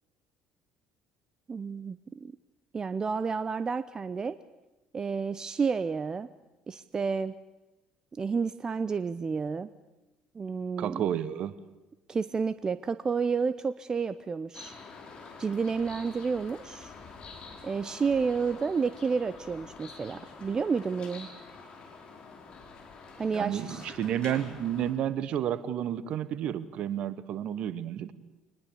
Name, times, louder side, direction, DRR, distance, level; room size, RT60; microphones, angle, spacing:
voice 1, 1.5-2.3 2.7-4.4 4.9-6.3 6.7-7.4 8.1-9.7 10.3-11.1 12.1-14.7 15.4-16.9 17.6-21.3 23.2-23.8, right 5 dB, 30° right, 15 dB, 0.7 m, -30 dB
voice 2, 10.8-11.5 23.3-28.1, right 10 dB, 55° right, 17 dB, 1.2 m, -31 dB
sound 1, 14.5-24.9, left 4 dB, 45° left, 5.2 m, -47 dB
24.0 x 20.0 x 8.5 m, 1.0 s
figure-of-eight pair, 55°, 2 cm